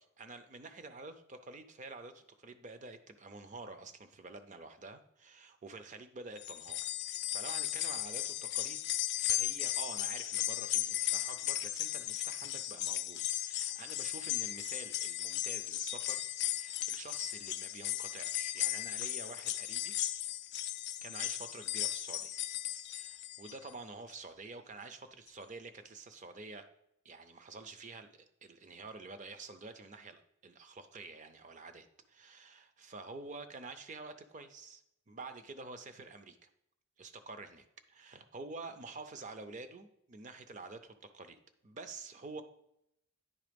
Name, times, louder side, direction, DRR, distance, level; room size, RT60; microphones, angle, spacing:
voice 1, 0.0-8.8 9.2-19.9 21.0-22.4 22.9-26.7 27.0-36.5 37.0-41.4 41.6-42.4, right 3 dB, 35° right, 9 dB, 0.5 m, -48 dB
sound 1, 6.4-23.7 24.1-24.2 25.3-25.4, left 14 dB, 50° left, 0.3 m, -36 dB
9.5 x 3.2 x 5.1 m, 0.79 s
head